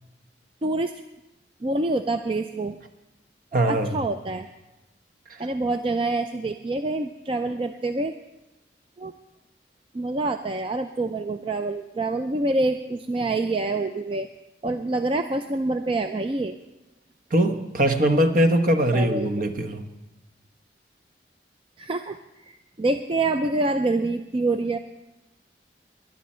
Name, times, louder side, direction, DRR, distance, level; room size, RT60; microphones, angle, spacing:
voice 1, 0.6-0.9 1.6-2.8 3.7-4.5 5.4-8.1 9.0-9.1 9.9-14.3 14.6-16.6 18.9-19.3 21.8-24.8, right 2 dB, 30° right, 8 dB, 0.4 m, -26 dB
voice 2, 3.5-3.9 5.3-5.4 17.3-19.8, right 1 dB, 50° right, 6 dB, 1.1 m, -21 dB
20.0 x 11.0 x 4.4 m, 1.0 s
head